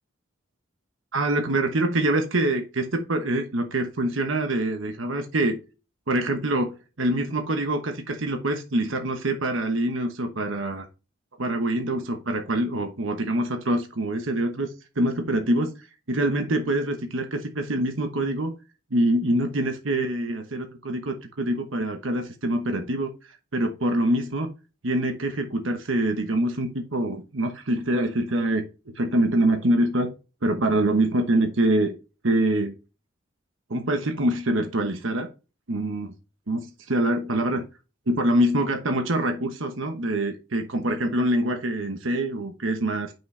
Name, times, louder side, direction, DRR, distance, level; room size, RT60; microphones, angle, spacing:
voice 1, 1.1-5.6 6.1-10.9 11.4-15.7 16.1-18.5 18.9-24.5 24.8-30.1 30.4-31.9 32.2-32.7 33.7-35.3 35.7-36.1 36.5-37.6 38.1-43.1, right 1 dB, 90° right, 5 dB, 1.1 m, -25 dB
7.5 x 6.1 x 3.3 m, 0.31 s
head